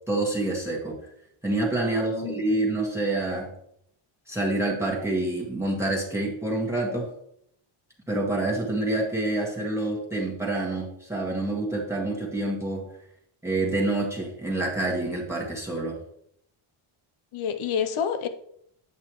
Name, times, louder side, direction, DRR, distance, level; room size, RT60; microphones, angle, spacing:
voice 1, 0.1-1.0 1.4-3.5 4.3-7.1 8.1-12.8 13.4-16.0, right 2 dB, 5° right, 1.6 m, -27 dB
voice 2, 1.8-2.3 17.3-18.3, left 7 dB, 75° left, 0.9 m, -29 dB
9.7 x 8.3 x 3.1 m
cardioid pair, 160°, 50 cm